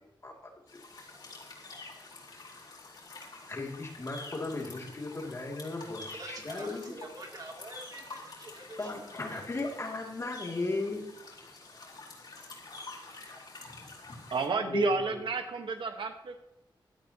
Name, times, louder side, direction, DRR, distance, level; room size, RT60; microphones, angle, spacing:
sound 1, 0.7-14.5, left 3 dB, 50° left, 4.3 m, -48 dB
voice 1, 3.5-6.8 8.8-11.0 14.7-15.2, left 3 dB, 35° left, 0 dB, 2.7 m, -35 dB
voice 2, 6.0-8.9 9.3-9.6, right 2 dB, 50° right, 0 dB, 2.9 m, -46 dB
voice 3, 14.3-16.4, right 5 dB, 80° right, 6 dB, 1.3 m, -31 dB
16.5 x 13.0 x 3.0 m, 0.88 s
wide cardioid pair, 165°, 8 cm